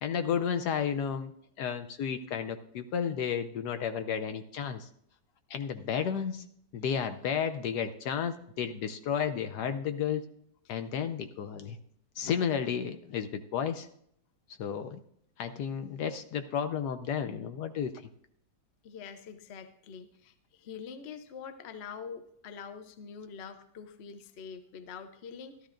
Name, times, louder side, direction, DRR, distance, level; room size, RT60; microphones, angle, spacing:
voice 1, 0.0-1.3 1.6-4.9 5.5-6.5 6.7-10.2 10.7-11.8 12.2-13.9 14.6-15.0 15.4-18.1, left 7 dB, 70° left, 9 dB, 1.1 m, -32 dB
voice 2, 18.8-25.7, left 6 dB, 55° left, 9 dB, 0.7 m, -45 dB
13.0 x 12.5 x 2.5 m, 0.68 s
omnidirectional pair, 2.0 m